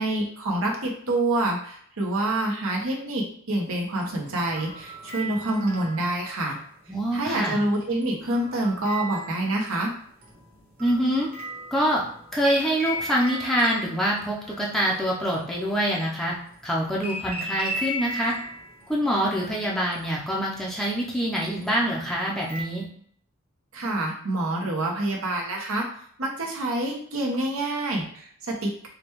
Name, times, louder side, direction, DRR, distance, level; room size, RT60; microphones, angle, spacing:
voice 1, 0.0-6.6 7.1-9.9 23.7-25.9 26.2-28.9, right 1 dB, 75° right, -1 dB, 1.0 m, -27 dB
sound 1, 3.9-6.5 7.7-9.8 10.2-16.1 16.8-20.9 21.3-22.6, equal, 40° right, 1.2 m, -37 dB
voice 2, 6.9-7.6 10.8-11.3 11.7-12.0 12.3-16.3 16.6-18.4 18.9-22.9, equal, ahead, -4 dB, 0.5 m, -25 dB
4.9 x 2.2 x 3.0 m, 0.62 s
head